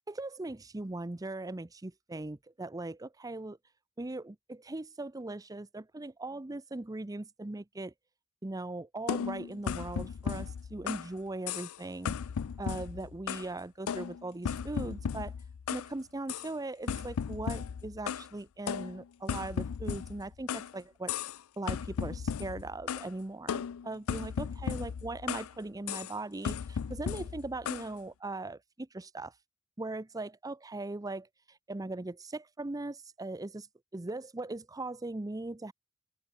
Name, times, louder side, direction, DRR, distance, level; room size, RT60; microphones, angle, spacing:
voice 1, 0.1-3.6 4.0-7.9 8.4-12.2 12.6-15.3 15.7-21.2 21.6-29.3 29.8-33.7 33.9-35.7, right 2 dB, 15° right, 0.6 m, -39 dB
sound 1, 9.1-11.1 11.5-11.8 12.1-13.5 13.9-15.9 16.3-16.5 16.9-18.3 18.7-20.7 21.1-21.4 21.7-23.1 23.5-25.5 25.9-26.1 26.4-27.9, left 7 dB, 85° left, 0.4 m, -36 dB
head